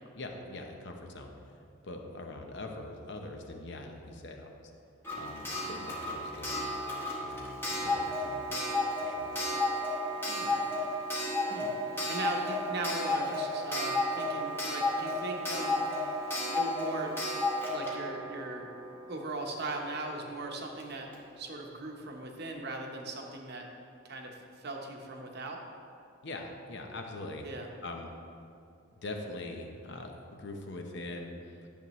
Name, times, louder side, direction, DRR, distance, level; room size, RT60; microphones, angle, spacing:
voice 1, 0.1-1.3 1.8-4.7 5.1-6.7 7.2-8.8 9.0-9.4 26.2-27.5 27.8-28.1 29.0-31.7, left 2 dB, 55° left, 3 dB, 0.8 m, -43 dB
Clock, 5.0-19.6 20.8-20.9 21.1-21.2, left 1 dB, 10° left, 1.2 m, -33 dB
voice 2, 10.3-10.7 11.5-11.7 12.1-15.8 16.5-17.2 17.7-18.7 19.1-21.1 21.4-23.7 24.0-25.6 27.4-27.7, right 2 dB, 50° right, 2 dB, 0.9 m, -39 dB
10.5 x 7.0 x 3.1 m, 2.5 s
head